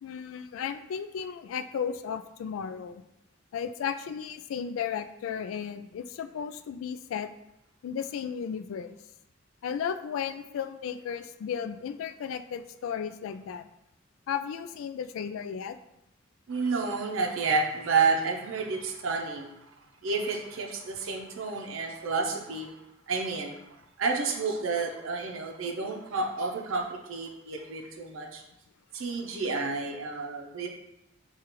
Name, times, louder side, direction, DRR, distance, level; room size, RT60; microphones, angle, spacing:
voice 1, 0.0-3.0 3.5-7.3 7.8-9.0 9.6-13.7 14.3-15.8, left 7 dB, 90° left, 11 dB, 0.3 m, -34 dB
voice 2, 16.5-19.5 20.0-22.7 23.1-23.6 24.0-28.4 28.9-30.7, right 4 dB, 85° right, 1 dB, 0.6 m, -30 dB
6.4 x 2.4 x 2.9 m, 0.84 s
head